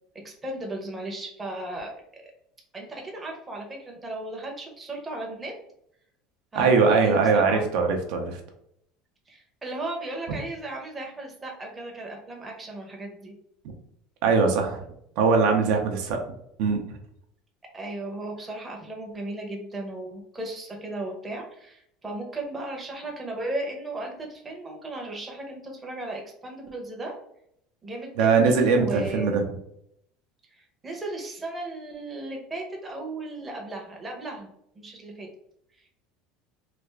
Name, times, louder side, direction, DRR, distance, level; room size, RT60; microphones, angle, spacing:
voice 1, 0.2-1.9 2.7-5.5 6.5-7.6 9.3-13.3 17.7-27.1 27.8-29.4 30.5-34.5 34.7-35.3, right 2 dB, 10° right, 0 dB, 0.7 m, -36 dB
voice 2, 6.6-8.4 14.2-14.8 15.2-16.2 16.6-16.8 28.2-29.4, right 4 dB, 60° right, 3 dB, 0.6 m, -21 dB
3.3 x 2.4 x 3.2 m, 0.73 s
cardioid pair, 170°, 0 cm